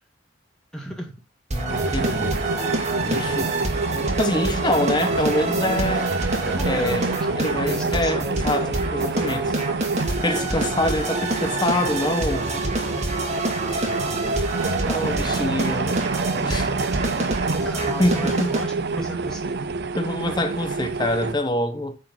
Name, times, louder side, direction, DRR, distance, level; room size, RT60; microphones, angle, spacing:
voice 1, 0.7-1.1 6.4-8.3 16.3-17.1 17.6-19.8, equal, 5° left, 2.1 m, -35 dB
voice 2, 1.5-2.4 3.0-3.5 4.2-6.1 6.6-7.1 7.4-9.6 10.0-12.5 14.9-16.0 16.4-16.7 18.0-18.5 20.0-22.0, left 1 dB, 20° left, 1.1 m, -25 dB
sound 1, 1.5-18.6, right 1 dB, 35° right, 2.0 m, -28 dB
sound 2, 1.7-21.3, right 4 dB, 55° right, 0.6 m, -27 dB
9.6 x 4.7 x 5.8 m
head